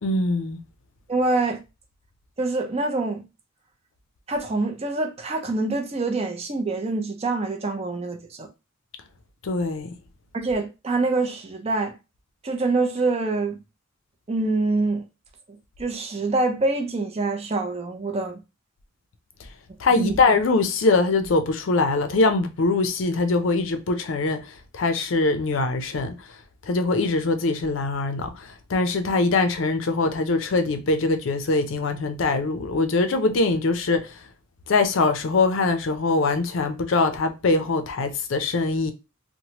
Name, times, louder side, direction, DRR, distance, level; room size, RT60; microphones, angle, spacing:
voice 1, 0.0-0.6 9.4-10.0 19.8-26.3 26.6-34.2 34.7-38.9, left 3 dB, 65° left, 0.5 m, -23 dB
voice 2, 1.1-1.6 2.4-3.2 4.3-8.5 10.3-11.9 12.4-13.6 14.3-15.0 15.8-18.4 20.0-20.2, right 3 dB, 30° right, 0.5 m, -25 dB
3.0 x 2.1 x 2.8 m
head